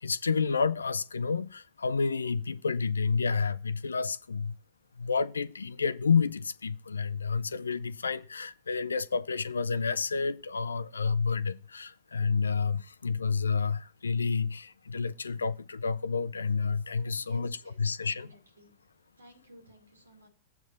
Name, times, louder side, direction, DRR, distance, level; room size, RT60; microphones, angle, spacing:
voice 1, 0.0-4.6 5.0-18.3, left 5 dB, 75° left, 0.4 m, -30 dB
voice 2, 17.1-18.8 19.2-20.3, right 2 dB, 75° right, 2.5 m, -53 dB
8.0 x 4.5 x 7.0 m
figure-of-eight pair, 90°, 0 cm